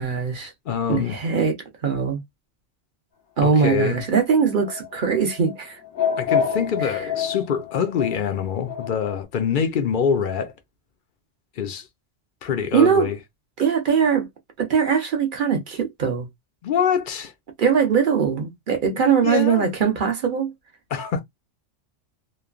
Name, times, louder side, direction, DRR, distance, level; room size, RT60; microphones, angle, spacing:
voice 1, 0.0-0.5 0.9-1.6 1.8-2.2 3.4-5.8 12.7-13.1 13.6-14.3 14.6-16.3 17.6-20.5, right 6 dB, 50° right, 0.8 m, -21 dB
voice 2, 0.7-1.2 3.4-4.0 6.2-10.5 11.6-11.9 12.4-13.2 16.6-17.3 18.9-19.7 20.9-21.2, left 7 dB, 60° left, 0.6 m, -25 dB
sound 1, 3.6-9.2, left 7 dB, 90° left, 1.1 m, -28 dB
3.0 x 2.1 x 2.4 m
omnidirectional pair, 1.3 m